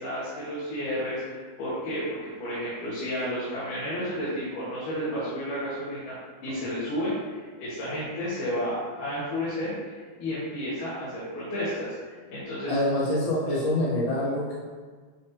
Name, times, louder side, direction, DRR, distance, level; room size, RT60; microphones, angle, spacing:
voice 1, 0.0-6.1 6.4-9.9 10.2-11.9 12.3-12.8, equal, 90° left, -9 dB, 3.0 m, -31 dB
voice 2, 12.7-14.5, left 1 dB, 25° left, -9 dB, 1.4 m, -26 dB
9.2 x 4.2 x 2.7 m, 1.5 s
omnidirectional pair, 3.6 m